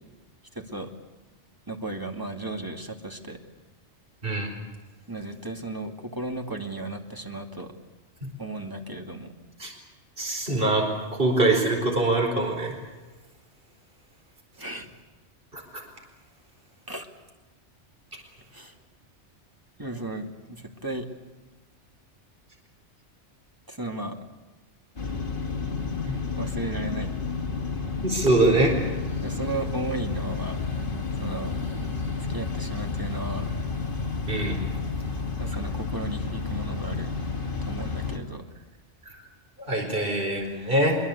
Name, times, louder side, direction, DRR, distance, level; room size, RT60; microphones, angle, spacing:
voice 1, 0.5-0.9 1.7-3.4 5.1-7.7 8.4-9.3 14.6-14.9 16.9-17.1 18.5-18.7 19.8-21.1 23.7-24.2 26.4-27.1 29.2-30.6 31.2-31.5 32.3-33.5 35.4-37.1 37.7-38.5, right 2 dB, 15° right, 3 dB, 2.5 m, -35 dB
voice 2, 10.2-10.9 11.2-12.7 15.5-15.8 26.1-26.2 28.0-28.7 34.3-34.6 39.1-39.2 39.7-41.0, right 2 dB, 50° right, 2 dB, 4.6 m, -23 dB
sound 1, 25.0-38.2, left 4 dB, 45° left, 2.6 m, -31 dB
24.0 x 23.0 x 8.4 m, 1.2 s
omnidirectional pair, 1.2 m